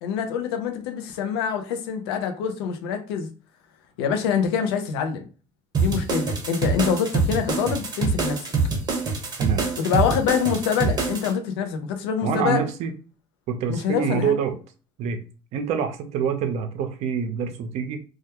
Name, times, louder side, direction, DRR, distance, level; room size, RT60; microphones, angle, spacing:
voice 1, 0.0-3.3 4.0-5.2 5.8-8.5 9.8-12.6 13.7-14.4, left 7 dB, 85° left, 6 dB, 0.5 m, -25 dB
sound 1, 5.7-11.3, right 4 dB, 35° right, 0.9 m, -25 dB
voice 2, 12.2-12.9 13.5-14.6 15.0-15.2 15.5-18.0, right 7 dB, 60° right, 7 dB, 0.5 m, -26 dB
2.2 x 2.2 x 2.9 m, 0.37 s
supercardioid pair, 90°, 13 cm